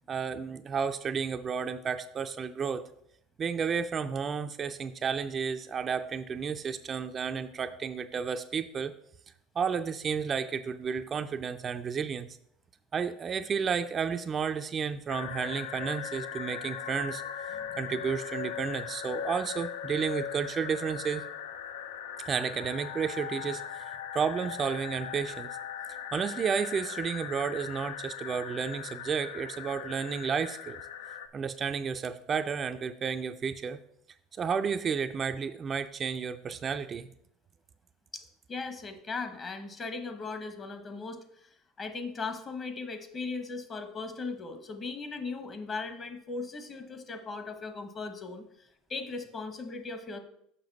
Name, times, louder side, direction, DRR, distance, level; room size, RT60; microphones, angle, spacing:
voice 1, 0.1-2.8 3.4-8.9 9.6-12.3 12.9-21.2 22.3-25.5 26.1-30.8 31.3-33.8 34.4-37.1, right 6 dB, 35° right, 8 dB, 0.4 m, -32 dB
sound 1, 15.1-31.3, left 8 dB, 90° left, 0.5 m, -39 dB
voice 2, 38.1-50.2, left 4 dB, 30° left, 8 dB, 1.0 m, -38 dB
6.7 x 5.7 x 4.0 m, 0.72 s
supercardioid pair, 105°, 0 cm